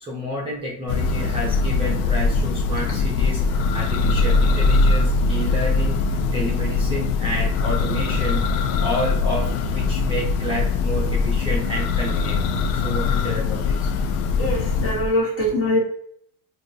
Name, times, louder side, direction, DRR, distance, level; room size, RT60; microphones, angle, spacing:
voice 1, 0.0-8.4 8.8-12.4 12.7-13.9, equal, 15° right, -5 dB, 0.6 m, -30 dB
Church bell, 0.9-15.2, left 4 dB, 75° left, 0.5 m, -21 dB
voice 2, 14.4-15.8, left 1 dB, 30° left, -3 dB, 1.3 m, -22 dB
3.6 x 2.5 x 2.6 m, 0.66 s
supercardioid pair, 130°, 42 cm